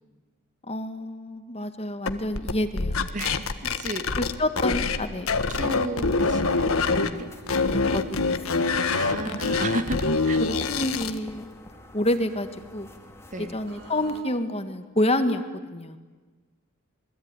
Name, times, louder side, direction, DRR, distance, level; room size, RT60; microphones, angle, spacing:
voice 1, 0.6-3.1 4.2-5.3 7.5-8.9 9.2-9.4 10.4-11.5 11.9-12.5 12.7-12.9 13.4-16.0, left 1 dB, 30° left, 8 dB, 1.7 m, -28 dB
sound 1, 2.1-5.0 5.3-7.1 7.5-11.2, left 4 dB, 75° left, 1.5 m, -25 dB
voice 2, 3.1-4.1 5.5-7.3 8.9-10.4 13.3-13.6, right 2 dB, 35° right, 8 dB, 1.8 m, -33 dB
sound 2, 4.9-11.0 13.7-14.2, right 1 dB, 55° right, 5.8 m, -46 dB
sound 3, 7.1-14.2, left 1 dB, 10° left, 2.3 m, -47 dB
27.5 x 22.0 x 9.8 m, 1.3 s
head